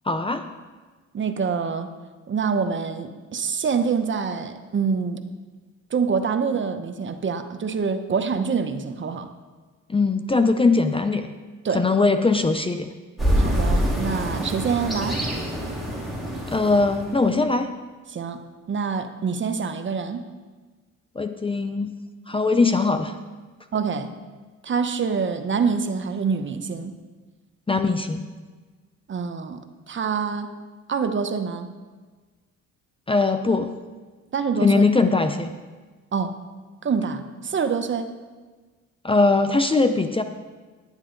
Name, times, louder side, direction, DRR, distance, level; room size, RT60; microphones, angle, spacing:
voice 1, 0.1-0.4 9.9-11.3 11.7-12.9 16.5-17.7 21.2-21.9 22.3-23.1 27.7-28.2 33.1-33.7 34.6-35.5 39.0-40.2, left 3 dB, 20° left, 8 dB, 0.6 m, -20 dB
voice 2, 1.1-1.9 2.3-5.2 5.9-9.3 11.6-11.8 13.4-15.2 18.1-20.3 23.7-24.1 24.6-27.0 29.1-30.5 30.9-31.7 34.3-34.8 36.1-36.3 36.8-38.1, right 5 dB, 40° right, 8 dB, 0.9 m, -26 dB
sound 1, 13.2-17.4, equal, ahead, 3.4 m, -25 dB
10.5 x 9.9 x 3.9 m, 1.4 s
cardioid pair, 90°, 30 cm